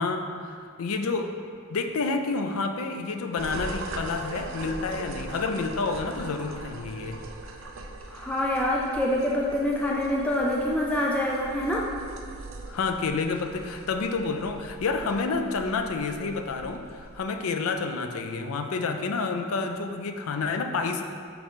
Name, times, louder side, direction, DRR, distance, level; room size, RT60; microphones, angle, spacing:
voice 1, 0.0-1.3 1.7-7.2 12.7-21.0, left 4 dB, 75° left, 6 dB, 0.5 m, -29 dB
sound 1, 3.4-17.2, right 2 dB, 60° right, 0.5 m, -41 dB
voice 2, 8.1-11.8, left 1 dB, 5° left, -3 dB, 0.4 m, -26 dB
7.7 x 3.7 x 3.7 m, 2.2 s
head